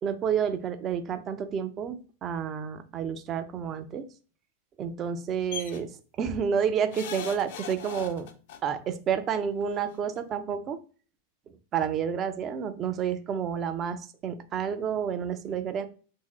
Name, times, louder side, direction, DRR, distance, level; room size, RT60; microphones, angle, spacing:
voice 1, 0.0-4.1 4.8-5.9 6.2-8.3 8.6-10.8 11.7-15.9, right 7 dB, 30° right, 10 dB, 0.4 m, -30 dB
sound 1, 5.5-5.8 6.9-8.6 9.8-9.9 10.2-10.3, left 8 dB, 50° left, 0.4 m, -39 dB
3.4 x 2.7 x 3.0 m, 0.38 s
figure-of-eight pair, 90°, 0 cm